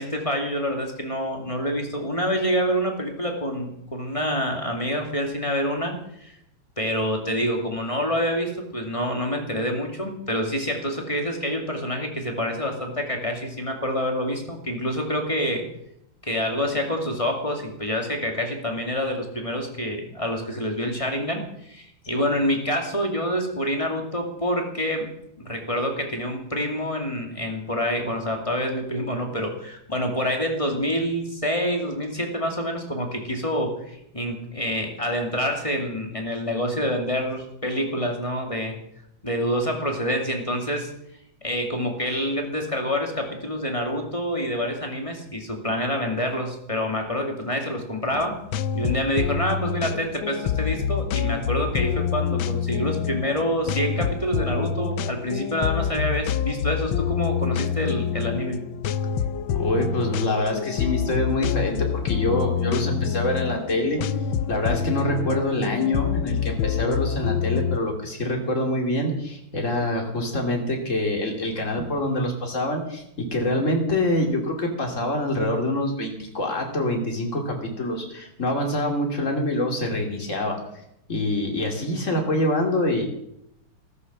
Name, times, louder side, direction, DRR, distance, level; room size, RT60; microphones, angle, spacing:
voice 1, 0.0-6.3 6.8-15.6 16.2-25.1 25.4-38.8 39.2-40.9 41.4-48.4 48.7-58.6, equal, 15° left, 2 dB, 2.3 m, -27 dB
sound 1, 48.1-67.8, left 8 dB, 75° left, 1.4 m, -27 dB
voice 2, 59.5-64.0 64.5-80.6 81.1-83.1, left 1 dB, 35° left, 2 dB, 3.1 m, -25 dB
14.0 x 13.5 x 6.2 m, 0.77 s
omnidirectional pair, 2.3 m